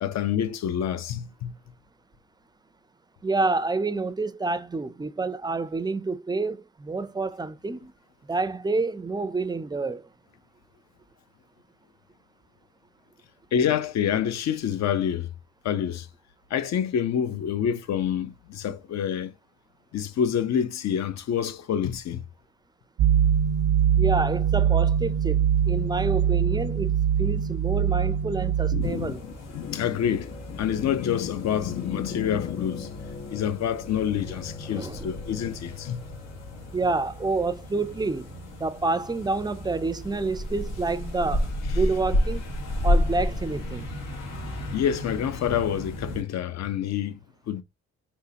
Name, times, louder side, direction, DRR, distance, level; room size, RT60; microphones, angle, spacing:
voice 1, 0.0-1.5 13.5-15.3 15.6-16.1 16.5-19.3 19.9-22.2 28.7-36.0 44.7-47.2 47.5-47.6, left 9 dB, 60° left, 0.7 m, -27 dB
voice 2, 3.2-7.9 8.3-10.1 24.0-29.2 34.6-35.1 36.7-42.4 42.8-43.9, right 3 dB, 15° right, 0.4 m, -28 dB
sound 1, 23.0-28.9, right 8 dB, 70° right, 0.5 m, -23 dB
sound 2, 28.8-46.2, left 1 dB, 85° left, 1.5 m, -32 dB
sound 3, 29.0-41.1, left 4 dB, 30° left, 1.2 m, -45 dB
4.1 x 3.6 x 2.8 m
cardioid pair, 90°, 30 cm